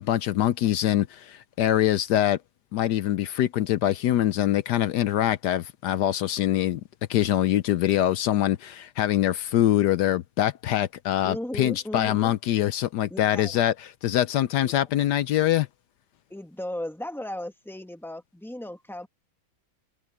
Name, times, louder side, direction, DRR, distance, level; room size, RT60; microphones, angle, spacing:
voice 1, 0.0-2.4 2.7-6.8 7.1-15.7, left 12 dB, 70° left, 1.0 m, -24 dB
voice 2, 11.2-12.3 13.1-13.6 16.3-19.1, left 1 dB, ahead, 1.0 m, -36 dB
omnidirectional pair, 2.2 m